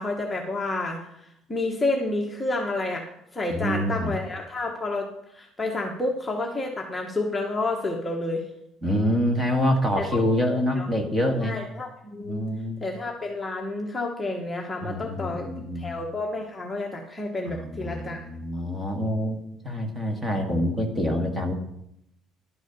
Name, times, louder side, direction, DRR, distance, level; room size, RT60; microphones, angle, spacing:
voice 1, 0.0-3.0 3.3-8.4 10.0-10.2 10.7-10.9 11.4-12.5 12.8-15.5 15.7-18.2, left 2 dB, 10° left, -1 dB, 1.1 m, -30 dB
voice 2, 3.5-4.1 8.8-11.6 12.2-12.8 14.8-15.9 17.5-21.5, equal, 15° right, 4 dB, 1.6 m, -26 dB
11.5 x 8.3 x 5.2 m, 0.77 s
cardioid pair, 160°, 0 cm